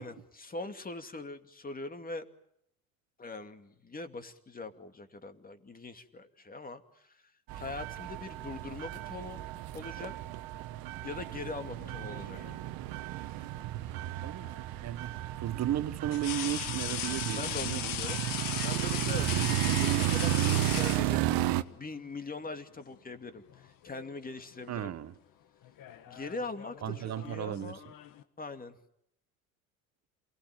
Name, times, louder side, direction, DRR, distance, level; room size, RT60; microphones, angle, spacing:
voice 1, 0.0-2.3 3.2-7.2 7.6-9.4 9.7-10.1 11.0-12.4 17.3-21.5 21.7-24.9 26.1-27.8 28.4-28.8, left 3 dB, 20° left, 2.5 m, -42 dB
sound 1, 7.5-21.6, right 15 dB, 55° right, 1.3 m, -33 dB
sound 2, 11.8-12.7 14.4-14.6 16.1-21.6 22.8-23.0 23.4-24.1 24.4-24.8 25.6-28.2, left 10 dB, 50° left, 1.9 m, -38 dB
voice 2, 14.8-17.9 24.7-25.1 26.8-27.8, right 11 dB, 40° right, 1.4 m, -35 dB
28.0 x 19.0 x 9.1 m
hypercardioid pair, 70°, 42 cm